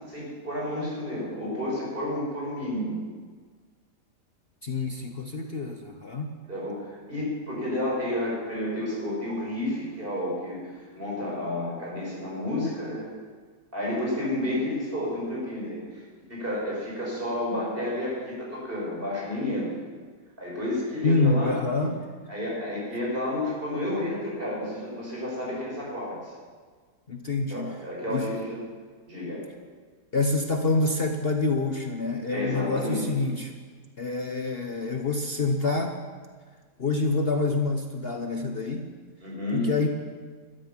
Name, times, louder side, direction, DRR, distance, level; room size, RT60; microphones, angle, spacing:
voice 1, 0.1-2.9 6.5-13.1 13.7-16.0 16.3-19.7 20.4-21.6 22.3-26.3 27.5-28.6 29.1-29.4 32.3-33.0 39.2-39.7, left 1 dB, 30° right, -4 dB, 6.6 m, -31 dB
voice 2, 4.6-6.4 21.0-22.0 27.1-27.8 28.1-28.3 30.1-33.5 34.0-35.9 36.8-38.9 39.5-39.9, left 3 dB, 40° left, 4 dB, 1.0 m, -26 dB
13.5 x 13.0 x 7.3 m, 1.5 s
omnidirectional pair, 1.8 m